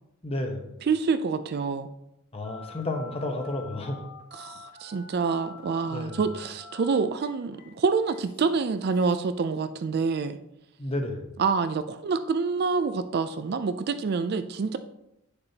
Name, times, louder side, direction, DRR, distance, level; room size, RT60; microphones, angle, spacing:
voice 1, 0.2-0.7 2.3-4.0 5.9-6.2 10.8-11.3, left 2 dB, 25° left, 4 dB, 0.9 m, -31 dB
voice 2, 0.8-1.9 4.3-10.4 11.4-14.8, right 4 dB, 45° right, 10 dB, 0.3 m, -27 dB
Telephone, 2.4-9.3, left 4 dB, 75° left, 2.6 m, -47 dB
8.6 x 6.7 x 2.8 m, 0.83 s
head